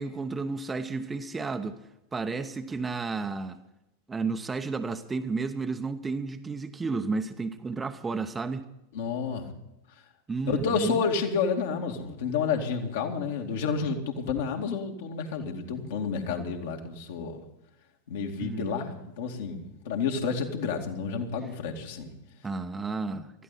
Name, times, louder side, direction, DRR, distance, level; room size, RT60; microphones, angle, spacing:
voice 1, 0.0-1.8 2.1-3.6 4.1-8.7 10.3-11.0 18.4-18.7 22.4-23.3, right 4 dB, 15° right, 7 dB, 1.0 m, -32 dB
voice 2, 8.9-9.5 10.5-17.4 18.1-22.1, left 5 dB, 55° left, 2 dB, 2.4 m, -30 dB
19.5 x 13.5 x 4.2 m, 0.89 s
figure-of-eight pair, 90°, 0 cm